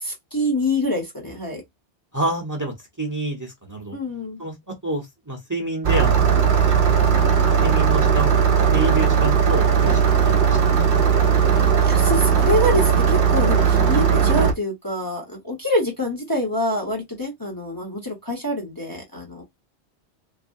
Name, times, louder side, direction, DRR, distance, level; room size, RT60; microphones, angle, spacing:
voice 1, 0.0-1.6 3.9-4.4 11.5-19.4, left 1 dB, 20° left, 0.8 m, -26 dB
voice 2, 2.1-4.0 4.4-4.5 4.8-6.6 7.6-8.3 8.7-10.6, right 2 dB, 20° right, 0.8 m, -28 dB
Engine starting, 5.8-14.5, right 7 dB, 55° right, 0.7 m, -17 dB
3.3 x 2.1 x 2.6 m
omnidirectional pair, 1.1 m